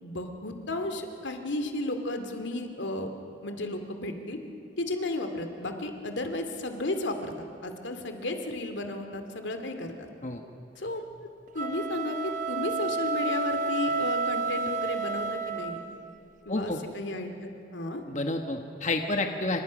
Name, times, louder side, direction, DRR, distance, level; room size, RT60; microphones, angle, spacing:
voice 1, 0.0-3.1 3.4-4.4 4.8-10.1 10.8-11.3 11.5-15.8 16.5-18.0, left 2 dB, 80° left, 6 dB, 2.4 m, -33 dB
sound 1, 11.5-16.0, right 4 dB, 45° right, 1.1 m, -30 dB
voice 2, 16.5-16.8 18.1-19.6, left 2 dB, 40° left, 4 dB, 1.3 m, -29 dB
29.0 x 25.5 x 6.3 m, 2.9 s
head